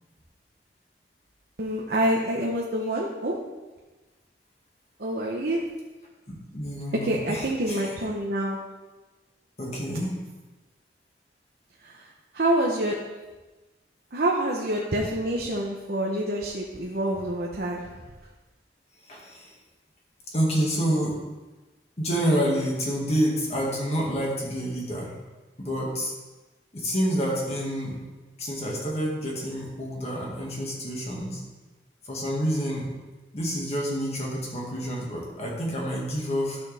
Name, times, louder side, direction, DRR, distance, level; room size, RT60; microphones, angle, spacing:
voice 1, 1.6-3.4 5.0-5.6 7.0-8.6 11.8-13.0 14.1-17.9, right 1 dB, 55° right, -2 dB, 0.9 m, -27 dB
voice 2, 6.5-8.1 9.6-10.2 19.1-19.5 20.3-21.2 22.0-25.2 25.6-26.1 26.7-28.0 28.4-31.4 32.0-32.9 33.3-36.6, equal, 35° left, -3 dB, 1.9 m, -28 dB
12.0 x 6.3 x 3.5 m, 1.2 s
head